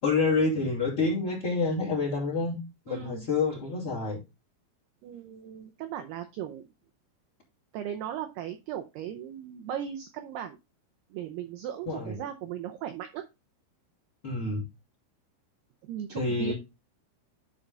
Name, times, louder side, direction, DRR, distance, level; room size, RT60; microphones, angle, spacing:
voice 1, 0.0-2.5 2.9-4.2 11.9-12.1 14.2-14.6 16.1-16.5, left 3 dB, 30° left, 3.4 m, -27 dB
voice 2, 2.9-3.3 5.0-6.7 7.7-10.6 11.1-13.2 15.8-16.5, right 10 dB, 80° right, 2.3 m, -37 dB
11.0 x 4.8 x 3.8 m
omnidirectional pair, 5.6 m